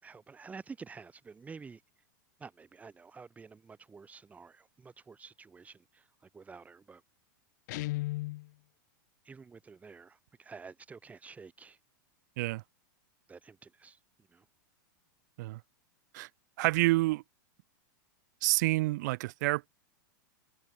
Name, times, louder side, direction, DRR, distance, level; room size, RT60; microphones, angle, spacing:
voice 1, 0.0-1.8 2.4-7.0 9.2-11.8 13.3-14.0 14.3-14.5, right 5 dB, 15° right, 5.3 m, -50 dB
Guitar, 7.7-8.5, left 20 dB, 60° left, 0.9 m, -34 dB
voice 2, 16.6-17.2 18.4-19.7, right 20 dB, 60° right, 0.6 m, -28 dB
supercardioid pair, 135°, 11 cm